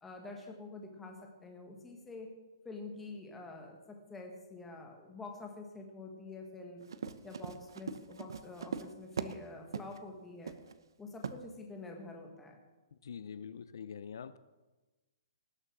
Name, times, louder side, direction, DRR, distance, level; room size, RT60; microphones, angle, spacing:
voice 1, 0.0-2.3 2.6-6.8 7.2-10.5 11.0-12.6, left 3 dB, 5° left, 1.4 m, -47 dB
Run, 6.8-9.4 9.7-10.0 10.5-10.7 11.2-11.4, right 6 dB, 90° right, 0.8 m, -40 dB
voice 2, 13.0-14.4, left 7 dB, 65° left, 0.5 m, -44 dB
18.5 x 6.6 x 6.1 m
hypercardioid pair, 175°, 2 cm